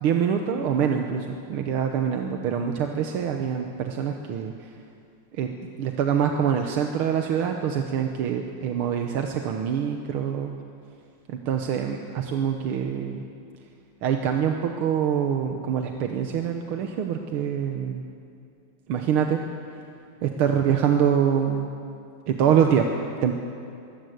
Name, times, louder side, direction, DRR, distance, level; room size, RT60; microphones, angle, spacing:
voice 1, 0.0-4.5 5.3-5.5 5.8-10.6 11.3-13.2 14.0-18.0 18.9-19.4 20.2-21.7 22.3-22.8 23.2-23.3, right 8 dB, 85° right, 4 dB, 1.9 m, -25 dB
22.5 x 17.5 x 8.0 m, 2.4 s
omnidirectional pair, 2.3 m